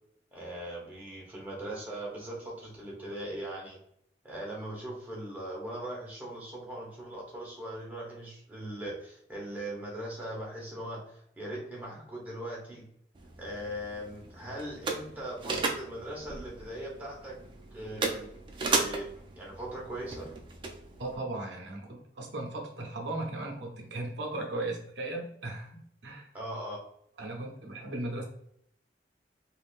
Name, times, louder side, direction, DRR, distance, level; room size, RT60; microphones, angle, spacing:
voice 1, 0.3-3.8 4.2-12.9 13.4-17.4 17.7-18.3 18.7-20.3 26.3-26.8, right 1 dB, 10° right, -4 dB, 0.8 m, -40 dB
sound 1, 13.2-21.2, right 4 dB, 25° right, 0.3 m, -36 dB
voice 2, 21.0-26.3 27.2-28.2, right 2 dB, 85° right, 2 dB, 0.6 m, -37 dB
3.5 x 2.4 x 2.4 m, 0.72 s
head